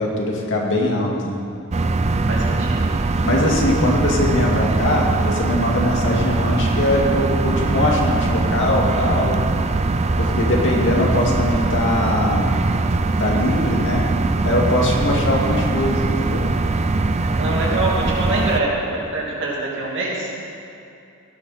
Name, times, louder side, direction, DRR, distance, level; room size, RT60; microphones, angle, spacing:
voice 1, 0.0-1.4 3.2-9.4 10.2-12.5 13.2-14.1 14.4-16.5, left 1 dB, 60° left, -1 dB, 2.2 m, -21 dB
sound 1, 1.7-18.6, right 3 dB, 30° right, 0.5 m, -21 dB
voice 2, 2.3-2.9 17.4-20.3, right 2 dB, 60° right, -3 dB, 2.8 m, -24 dB
17.5 x 11.0 x 4.3 m, 2.6 s
head